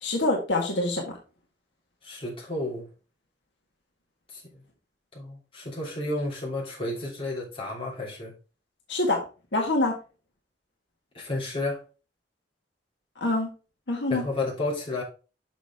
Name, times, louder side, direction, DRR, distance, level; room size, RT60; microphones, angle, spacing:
voice 1, 0.0-1.1 8.9-9.2 9.5-9.9 13.2-13.5 13.9-14.2, left 2 dB, 75° left, 1.7 m, -25 dB
voice 2, 2.0-2.9 4.3-4.6 5.1-8.3 11.1-11.8 14.1-15.0, left 2 dB, 30° left, 3.0 m, -32 dB
6.2 x 6.1 x 3.6 m
head